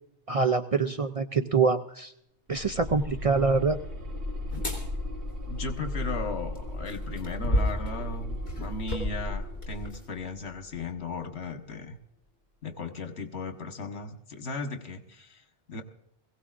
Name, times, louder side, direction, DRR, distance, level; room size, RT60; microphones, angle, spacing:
voice 1, 0.3-2.1 2.5-3.8, right 4 dB, 45° right, 7 dB, 0.5 m, -25 dB
sound 1, 2.5-11.4, left 1 dB, 90° right, 2.5 m, -37 dB
sound 2, 4.5-4.8 6.6-10.1 10.7-10.9, left 1 dB, 60° left, 3.6 m, -32 dB
voice 2, 5.5-12.0 12.6-15.8, left 3 dB, 80° left, 6 dB, 1.6 m, -36 dB
21.0 x 16.5 x 2.5 m, 0.74 s
omnidirectional pair, 1.1 m